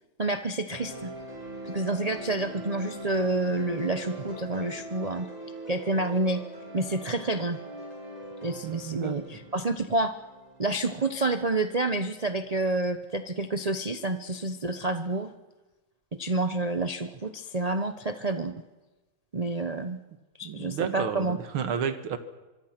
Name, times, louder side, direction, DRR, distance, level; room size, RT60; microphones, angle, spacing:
voice 1, 0.2-1.1 1.6-5.3 5.7-6.4 6.7-7.6 8.4-10.1 10.6-15.3 16.1-18.5 19.3-20.0 20.4-21.4, right 2 dB, 45° right, 8 dB, 0.4 m, -28 dB
sound 1, 0.7-12.8, right 1 dB, 15° left, 5.4 m, -42 dB
voice 2, 8.6-9.2 20.4-22.2, right 7 dB, 75° right, 10 dB, 2.4 m, -31 dB
25.0 x 24.5 x 6.0 m, 1.1 s
omnidirectional pair, 2.3 m